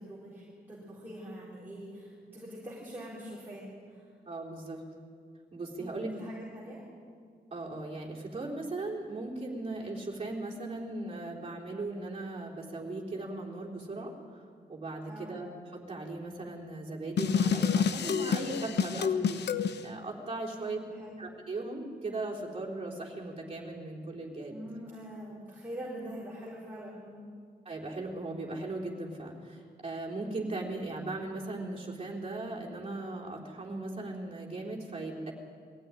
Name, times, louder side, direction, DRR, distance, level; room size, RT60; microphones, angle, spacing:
voice 1, 0.0-4.0 5.8-6.8 15.1-15.4 20.5-21.2 24.5-27.3, equal, 10° right, -7 dB, 4.3 m, -44 dB
voice 2, 4.3-4.8 5.5-6.1 7.5-14.4 14.7-15.5 15.7-19.4 19.8-20.8 21.2-24.6 27.7-35.3, right 2 dB, 35° right, -2 dB, 3.9 m, -38 dB
sound 1, 17.2-19.8, left 7 dB, 85° left, 0.9 m, -28 dB
22.5 x 15.5 x 9.9 m, 2.1 s
wide cardioid pair, 180°, 17 cm